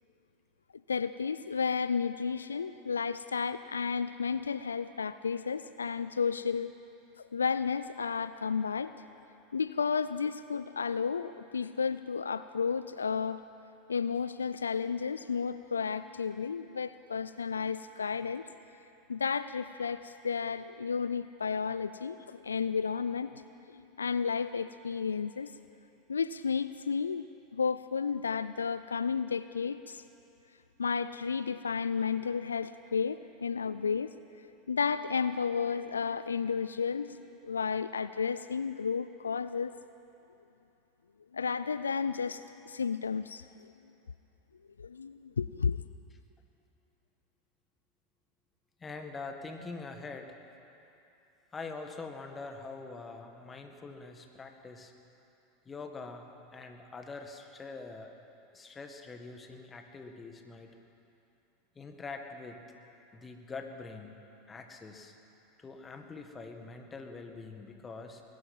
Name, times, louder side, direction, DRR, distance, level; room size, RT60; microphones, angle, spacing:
voice 1, 0.9-6.7 7.2-8.9 9.5-13.4 13.9-18.4 19.1-23.4 23.7-25.5 26.1-27.3 27.5-30.0 30.8-34.1 34.7-39.7 41.3-43.5 44.8-45.8, left 6 dB, 90° left, 13 dB, 0.3 m, -32 dB
voice 2, 48.8-50.4 51.5-54.9 55.7-58.1 58.5-60.7 61.8-62.6 63.1-64.1 64.5-65.1 65.6-68.2, left 4 dB, 20° left, 5 dB, 1.7 m, -44 dB
20.5 x 12.0 x 5.5 m, 2.8 s
hypercardioid pair, 85°, 0 cm